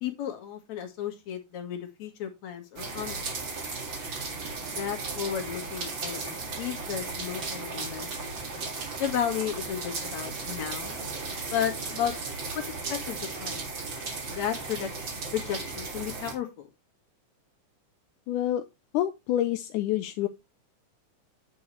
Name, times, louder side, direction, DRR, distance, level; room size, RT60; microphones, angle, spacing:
voice 1, 0.0-3.5 4.6-8.4 9.0-11.0 11.5-12.1 12.5-13.7 14.3-16.7, left 9 dB, 65° left, 3.0 m, -34 dB
sound 1, 2.8-16.3, right 4 dB, 45° right, 2.4 m, -36 dB
voice 2, 18.3-18.6 18.9-20.3, left 12 dB, 85° left, 2.1 m, -27 dB
9.1 x 6.8 x 3.2 m
omnidirectional pair, 3.6 m